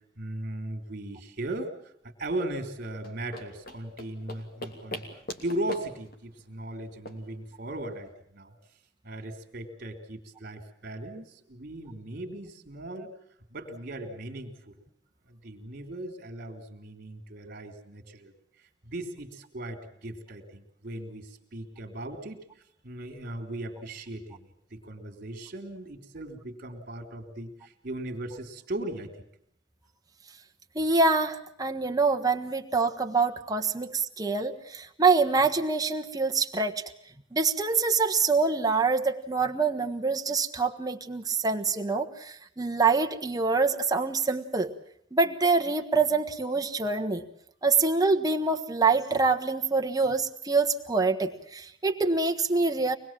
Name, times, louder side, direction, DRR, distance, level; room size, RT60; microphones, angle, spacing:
voice 1, 0.2-5.0 5.4-8.5 9.0-13.1 13.5-14.8 15.3-18.3 18.8-22.4 22.8-29.3, right 1 dB, 45° right, 5 dB, 3.1 m, -38 dB
sound 1, 2.9-8.1, left 2 dB, 50° left, 2.9 m, -42 dB
voice 2, 30.7-36.7 37.3-44.7 45.1-47.2 47.6-52.9, right 4 dB, 20° right, 5 dB, 1.4 m, -25 dB
24.5 x 20.5 x 7.5 m, 0.67 s
head